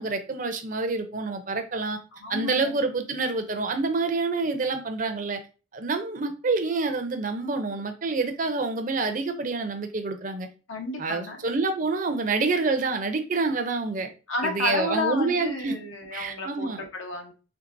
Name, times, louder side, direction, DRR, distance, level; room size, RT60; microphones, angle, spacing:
voice 1, 0.0-2.0 2.3-5.4 5.7-10.5 11.0-14.1 14.4-15.7 16.1-16.8, right 3 dB, 40° right, 0.5 m, -27 dB
voice 2, 2.2-2.8 10.7-11.4 14.3-17.3, left 2 dB, 80° left, 1.0 m, -31 dB
4.5 x 3.3 x 2.6 m
head